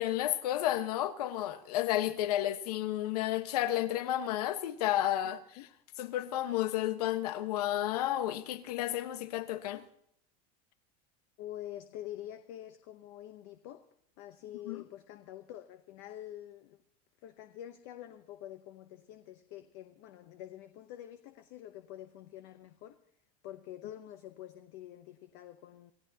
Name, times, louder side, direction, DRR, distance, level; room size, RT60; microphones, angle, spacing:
voice 1, 0.0-5.6 6.0-9.8 14.6-14.8, left 13 dB, 85° left, 1.3 m, -32 dB
voice 2, 11.4-13.9 14.2-16.8 17.2-23.0 23.4-25.9, left 12 dB, 45° left, 0.9 m, -47 dB
28.0 x 15.5 x 2.9 m
supercardioid pair, 175°, 19 cm